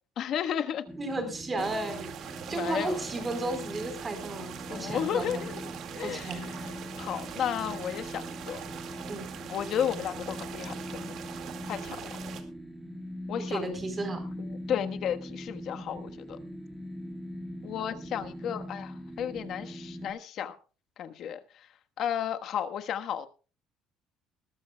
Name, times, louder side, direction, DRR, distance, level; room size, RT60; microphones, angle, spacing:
voice 1, 0.2-0.8 1.6-1.7 2.5-3.0 4.7-5.7 6.0-8.6 9.5-11.1 11.7-12.0 13.3-13.8 14.4-16.4 17.6-20.6 21.0-21.7 22.0-23.3, left 9 dB, 50° left, 8 dB, 1.3 m, -33 dB
sound 1, 0.9-20.1, equal, 5° left, 2.2 m, -41 dB
voice 2, 1.0-5.4 6.0-6.4 9.1-9.3 13.5-14.2, right 2 dB, 20° right, 7 dB, 4.1 m, -34 dB
sound 2, 1.6-12.4, right 9 dB, 55° right, 2.1 m, -42 dB
20.5 x 13.0 x 2.3 m, 0.35 s
cardioid pair, 140°, 0 cm